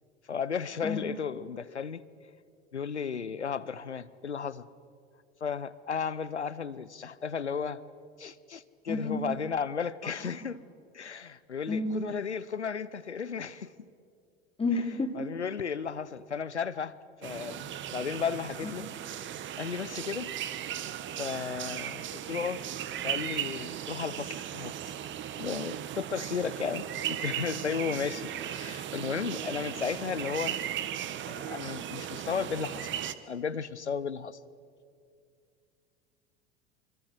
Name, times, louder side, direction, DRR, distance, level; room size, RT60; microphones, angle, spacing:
voice 1, 0.3-2.0 2.7-4.7 5.4-7.8 8.2-10.6 10.9-13.7 15.1-17.0 17.2-18.9 19.6-20.3 21.1-22.6 23.0-24.9 25.4-30.6 31.3-32.9 33.3-34.4, left 6 dB, 85° left, 17 dB, 0.9 m, -34 dB
voice 2, 8.9-9.2 10.2-10.3 11.7-11.9 14.6-15.1 18.6-18.7, left 3 dB, 15° left, 4 dB, 3.5 m, -30 dB
sound 1, 17.2-33.1, right 10 dB, 35° right, 1.4 m, -37 dB
25.5 x 25.5 x 7.9 m, 2.3 s
figure-of-eight pair, 80°, 33 cm